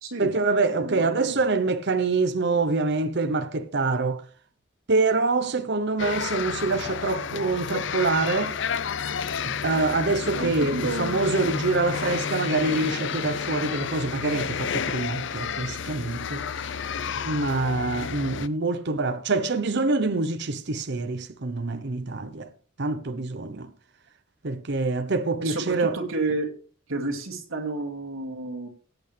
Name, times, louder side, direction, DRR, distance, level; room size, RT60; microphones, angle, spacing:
voice 1, 0.2-4.2 4.9-8.6 9.5-16.4 17.3-22.5 22.8-23.7 24.4-26.0, right 3 dB, 55° right, 0.8 m, -25 dB
voice 2, 0.7-1.4 10.3-11.2 25.4-26.5 26.9-28.7, right 2 dB, 80° right, 2.5 m, -31 dB
sound 1, 6.0-18.5, left 6 dB, 60° left, 0.6 m, -31 dB
16.5 x 8.6 x 3.4 m
head